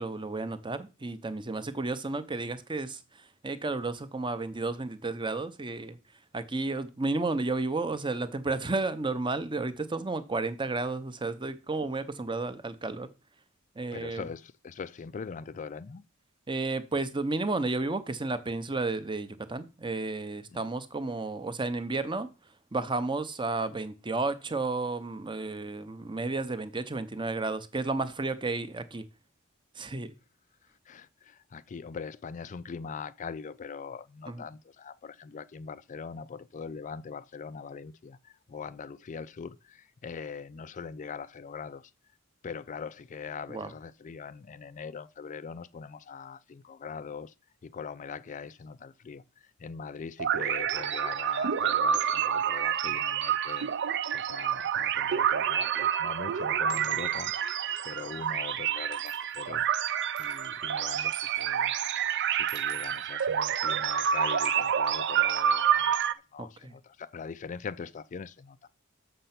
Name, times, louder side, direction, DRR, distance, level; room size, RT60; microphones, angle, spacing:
voice 1, 0.0-6.0 6.3-13.1 13.8-14.3 16.5-22.3 22.7-29.0 29.7-30.2 34.3-34.4 43.5-43.7 66.6-66.7, right 3 dB, 20° right, 0.8 m, -32 dB
voice 2, 13.9-16.0 30.6-41.9 42.4-47.3 47.6-59.9 60.2-68.7, left 5 dB, 35° left, 0.3 m, -42 dB
sound 1, 50.2-66.1, right 8 dB, 55° right, 0.5 m, -28 dB
6.7 x 6.6 x 5.9 m
head